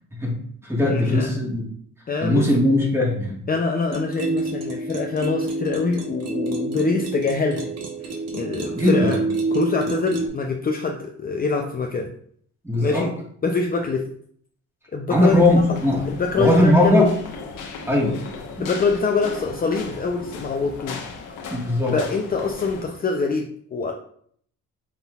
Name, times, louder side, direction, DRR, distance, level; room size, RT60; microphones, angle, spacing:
voice 1, 0.2-1.6 2.2-3.4 8.7-9.2 12.6-13.1 15.1-16.1 16.4-17.1 17.9-18.2 18.6-18.7 21.5-22.0, left 1 dB, 10° right, -2 dB, 1.6 m, -19 dB
voice 2, 0.8-1.3 2.1-2.5 3.5-7.7 8.3-9.2 9.5-12.1 12.8-13.1 13.4-14.1 14.9-15.4 16.1-17.1 18.6-21.0 21.9-23.9, left 4 dB, 30° left, 2 dB, 0.5 m, -24 dB
sound 1, 3.9-10.3, right 2 dB, 60° right, 1.1 m, -28 dB
sound 2, 15.3-22.8, left 4 dB, 85° left, 1.1 m, -37 dB
5.6 x 3.8 x 2.4 m, 0.62 s
cardioid pair, 90°, 30 cm